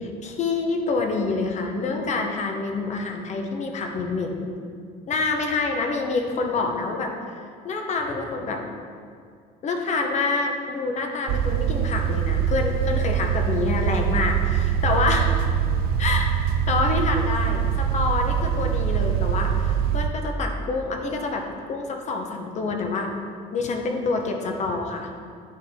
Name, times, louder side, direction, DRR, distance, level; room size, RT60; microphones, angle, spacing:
voice 1, 0.0-4.5 5.1-8.6 9.6-15.3 16.0-16.3 16.7-23.1 23.5-25.1, left 3 dB, 45° left, 3 dB, 0.9 m, -27 dB
sound 1, 11.3-20.1, right 8 dB, 65° right, 0.4 m, -23 dB
9.7 x 4.2 x 3.6 m, 2.2 s
cardioid pair, 125°, 17 cm